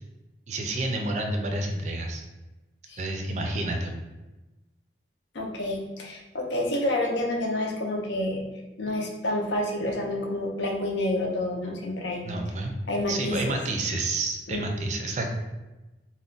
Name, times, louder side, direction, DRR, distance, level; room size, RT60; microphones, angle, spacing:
voice 1, 0.5-2.2 3.0-4.0 12.2-12.7 13.1-15.3, right 2 dB, 40° right, 3 dB, 0.4 m, -29 dB
voice 2, 5.3-8.4 8.8-12.2 12.9-13.6 14.5-14.7, left 1 dB, 80° left, 1 dB, 0.6 m, -28 dB
2.4 x 2.1 x 3.7 m, 1.1 s
head